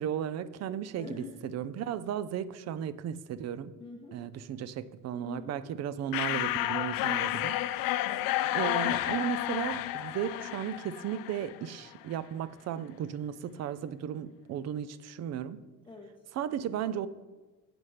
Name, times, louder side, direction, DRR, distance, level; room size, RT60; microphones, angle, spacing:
voice 1, 0.0-3.7 4.1-7.6 8.5-15.6 16.3-17.1, right 9 dB, 50° right, 0.4 m, -35 dB
voice 2, 0.9-1.4 3.8-4.2 5.2-5.6 8.1-8.6 15.9-16.2, left 3 dB, 15° left, 1.0 m, -46 dB
sound 1, 6.1-11.6, left 15 dB, 75° left, 0.5 m, -31 dB
7.9 x 4.9 x 5.6 m
cardioid pair, 120°, 35 cm